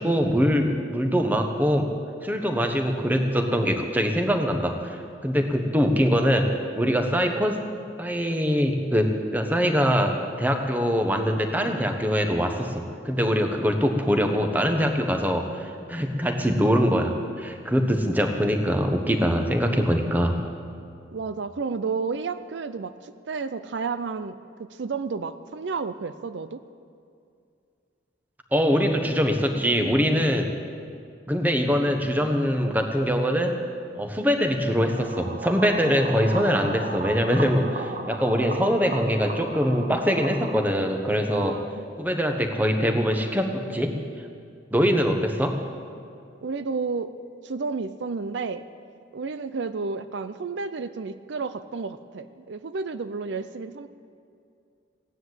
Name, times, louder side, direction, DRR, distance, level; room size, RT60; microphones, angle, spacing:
voice 1, 0.0-1.9 2.2-7.6 8.0-20.4 28.5-30.5 31.3-33.6 33.9-41.6 42.0-44.0 44.7-45.6, equal, 10° right, 4 dB, 1.1 m, -23 dB
voice 2, 21.1-26.6 41.3-41.9 46.4-47.1 47.4-48.6 49.1-53.9, right 4 dB, 70° right, 11 dB, 0.5 m, -31 dB
sound 1, 34.7-40.7, right 2 dB, 45° right, 1.1 m, -36 dB
16.0 x 10.0 x 8.0 m, 2.4 s
head